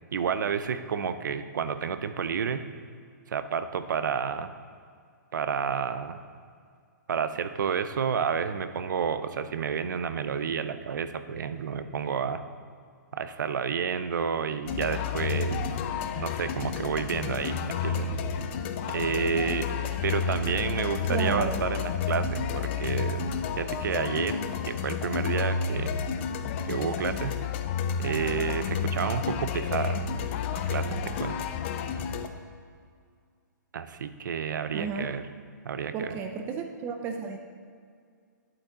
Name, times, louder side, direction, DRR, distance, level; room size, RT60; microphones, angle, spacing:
voice 1, 0.1-2.6 3.3-4.5 5.3-6.2 7.1-12.4 13.1-15.6 16.2-18.1 18.9-19.7 20.0-23.2 23.6-24.4 24.6-26.0 26.7-27.4 28.0-30.0 30.5-31.4 33.7-35.2 35.6-36.1, right 7 dB, 75° right, 11 dB, 0.6 m, -30 dB
sound 1, 14.7-32.3, left 6 dB, 35° left, 0.5 m, -30 dB
voice 2, 21.1-21.6 34.7-35.1 35.9-37.4, right 5 dB, 20° right, 5 dB, 0.4 m, -32 dB
8.9 x 8.7 x 3.8 m, 2.2 s
hypercardioid pair, 150°, 10 cm